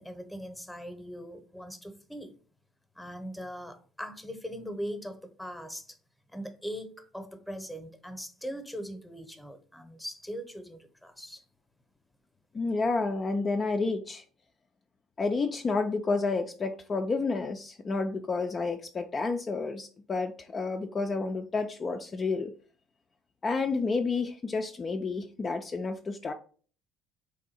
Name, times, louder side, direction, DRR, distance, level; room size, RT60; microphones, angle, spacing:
voice 1, 0.0-2.4 2.9-6.0 6.3-11.4, equal, 5° left, 8 dB, 0.8 m, -40 dB
voice 2, 12.5-14.2 15.2-22.5 23.4-26.3, left 3 dB, 35° left, 4 dB, 0.4 m, -30 dB
3.5 x 2.6 x 4.1 m, 0.42 s
hypercardioid pair, 65°, 0 cm